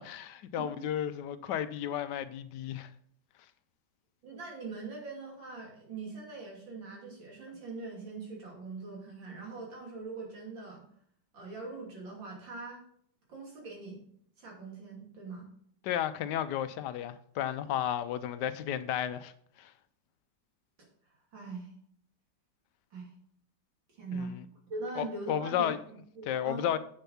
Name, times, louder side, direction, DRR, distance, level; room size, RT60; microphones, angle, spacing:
voice 1, 0.0-2.9 15.8-19.3 19.6-19.7 24.1-24.3 25.0-25.8 26.3-26.8, left 10 dB, 75° left, 1.1 m, -33 dB
voice 2, 0.6-0.9 4.2-10.9 11.3-12.8 13.3-14.0 14.4-15.5 20.8-20.9 21.3-21.7 22.9-23.1 23.9-24.4 24.7-26.7, right 3 dB, 90° right, 3.6 m, -42 dB
8.1 x 6.9 x 5.7 m
omnidirectional pair, 2.0 m